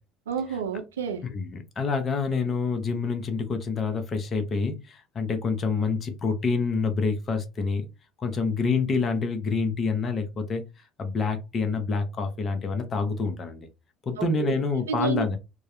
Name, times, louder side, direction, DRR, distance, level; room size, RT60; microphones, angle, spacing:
voice 1, 0.3-1.3 14.2-14.6 14.9-15.4, right 6 dB, 90° right, 0.3 m, -30 dB
voice 2, 1.3-7.9 8.2-10.6 11.0-13.7 14.1-15.4, left 4 dB, 40° left, 0.6 m, -27 dB
2.2 x 2.0 x 2.9 m
hypercardioid pair, 70°, 0 cm